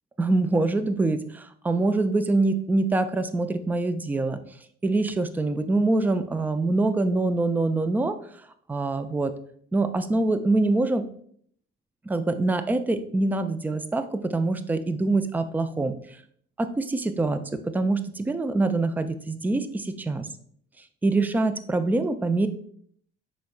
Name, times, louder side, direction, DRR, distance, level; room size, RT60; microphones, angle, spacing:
voice 1, 0.2-4.4 4.8-8.1 8.7-9.3 9.7-11.1 12.1-15.9 16.6-20.3 21.0-22.5, right 2 dB, 5° right, 9 dB, 0.4 m, -24 dB
5.1 x 4.2 x 2.3 m, 0.62 s
hypercardioid pair, 55°, 33 cm